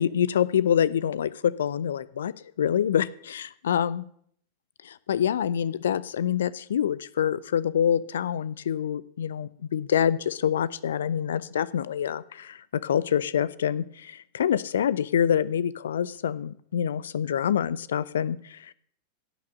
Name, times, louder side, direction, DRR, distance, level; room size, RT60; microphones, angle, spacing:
voice 1, 0.0-4.0 4.8-18.7, left 9 dB, 65° left, 20 dB, 0.4 m, -26 dB
16.5 x 6.0 x 6.4 m, 0.64 s
figure-of-eight pair, 90°, 0 cm